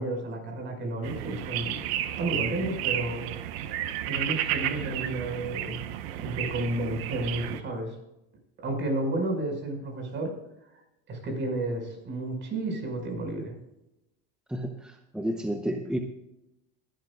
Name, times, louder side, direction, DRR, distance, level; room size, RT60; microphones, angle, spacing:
voice 1, 0.0-1.8 2.2-3.3 3.6-3.8 4.0-5.8 6.1-8.0 8.6-10.3 11.1-13.5, right 2 dB, 40° right, 3 dB, 5.4 m, -31 dB
sound 1, 1.0-7.6, right 12 dB, 80° right, 1.1 m, -32 dB
voice 2, 14.5-16.0, equal, 5° right, 5 dB, 0.8 m, -31 dB
21.0 x 12.0 x 2.4 m, 0.90 s
supercardioid pair, 130°, 30 cm